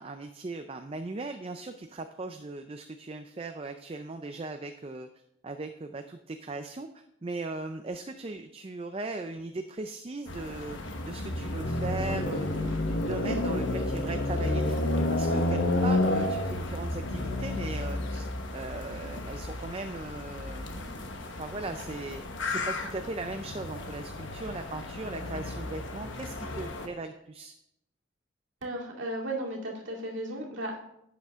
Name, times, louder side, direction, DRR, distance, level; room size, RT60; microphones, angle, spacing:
voice 1, 0.0-5.1 5.4-27.5, right 2 dB, 30° right, 7 dB, 0.4 m, -38 dB
sound 1, 10.3-26.9, left 2 dB, 65° left, 1.2 m, -31 dB
voice 2, 28.6-30.9, right 1 dB, 65° right, -2 dB, 2.3 m, -35 dB
11.5 x 8.0 x 3.6 m, 0.79 s
head